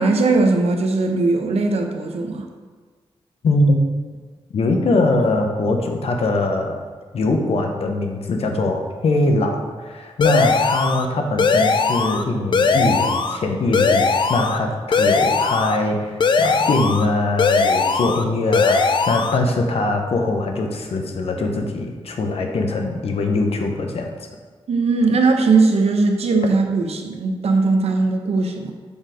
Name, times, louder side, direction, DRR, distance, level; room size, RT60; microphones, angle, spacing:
voice 1, 0.0-2.5 24.7-28.7, right 3 dB, 85° right, 4 dB, 0.8 m, -19 dB
voice 2, 3.4-3.8 4.5-6.8 7.1-24.1, left 2 dB, 75° left, 3 dB, 0.9 m, -22 dB
sound 1, 10.2-11.1 11.4-12.2 12.5-13.4 13.7-14.6 14.9-15.8 16.2-17.1 17.4-18.2 18.5-19.4, left 4 dB, 50° left, 0.4 m, -19 dB
7.0 x 4.0 x 5.1 m, 1.5 s
wide cardioid pair, 150°, 10 cm